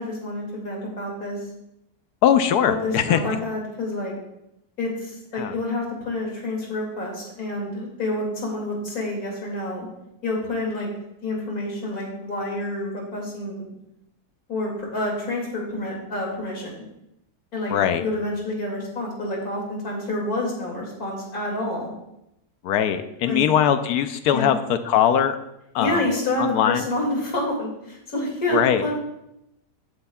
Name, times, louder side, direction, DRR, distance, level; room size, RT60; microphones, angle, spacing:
voice 1, 0.0-1.4 2.7-4.1 4.8-9.9 10.2-10.9 11.2-13.6 14.5-16.8 17.5-17.7 18.0-21.9 23.3-23.5 24.3-24.6 25.8-28.9, left 1 dB, 70° left, -1 dB, 2.9 m, -28 dB
voice 2, 2.2-3.2 5.3-5.6 17.7-18.0 22.6-25.4 25.7-26.0 26.4-26.8 28.5-28.8, left 9 dB, 90° left, 10 dB, 1.2 m, -21 dB
13.0 x 7.9 x 2.3 m, 0.85 s
omnidirectional pair, 1.6 m